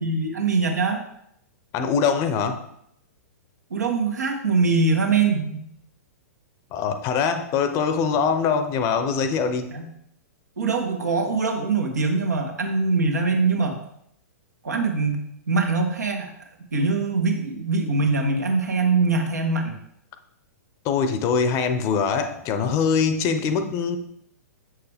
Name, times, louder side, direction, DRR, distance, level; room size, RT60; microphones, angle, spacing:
voice 1, 0.0-1.0 3.7-5.7 9.7-9.8 10.6-13.8 14.6-15.2 15.5-16.3 16.7-19.8, right 4 dB, 75° right, 3 dB, 1.5 m, -23 dB
voice 2, 1.7-2.6 6.7-9.7 20.8-24.0, left 6 dB, 35° left, 9 dB, 0.8 m, -23 dB
7.2 x 6.4 x 3.5 m, 0.73 s
figure-of-eight pair, 110°, 9 cm